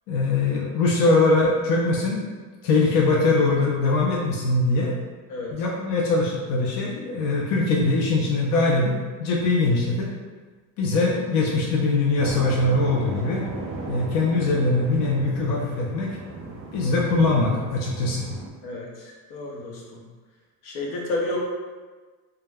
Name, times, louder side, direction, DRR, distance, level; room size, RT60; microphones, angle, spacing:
voice 1, 0.1-2.3 2.6-5.0 5.5-8.9 9.2-10.1 10.8-13.4 13.9-16.1 16.7-18.2, left 2 dB, 55° left, -3 dB, 0.5 m, -22 dB
sound 1, 12.2-18.5, right 2 dB, 35° right, 0.4 m, -36 dB
voice 2, 18.6-20.0 20.6-21.4, left 2 dB, 80° left, -2 dB, 0.8 m, -31 dB
2.2 x 2.1 x 3.3 m, 1.4 s
cardioid pair, 145°, 40 cm